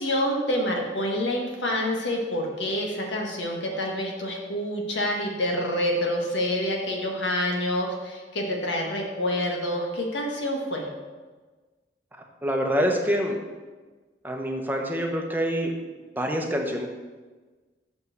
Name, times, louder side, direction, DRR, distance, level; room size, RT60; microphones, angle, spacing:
voice 1, 0.0-10.9, left 1 dB, 90° left, 0 dB, 1.7 m, -27 dB
voice 2, 12.4-13.4 14.2-15.7 16.2-16.9, equal, 10° right, 2 dB, 0.9 m, -26 dB
6.6 x 5.4 x 6.7 m, 1.3 s
head